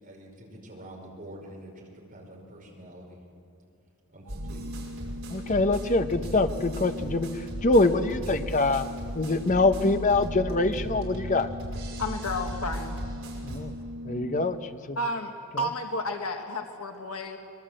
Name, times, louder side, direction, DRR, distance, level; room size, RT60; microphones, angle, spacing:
voice 1, 0.0-3.2 4.1-4.7, right 1 dB, 40° right, -1 dB, 5.5 m, -46 dB
Organ, 4.2-15.0, equal, 90° right, 1.0 m, -41 dB
sound 1, 4.3-13.6, equal, 65° right, 5.6 m, -37 dB
voice 2, 5.3-7.3 7.6-8.9 9.1-11.5 13.4-13.7 14.0-14.6 14.9-15.0, left 2 dB, 35° left, 8 dB, 1.0 m, -24 dB
voice 3, 12.0-13.0 15.0-17.4, left 1 dB, 80° left, 4 dB, 1.6 m, -32 dB
24.5 x 22.5 x 7.8 m, 2.5 s
head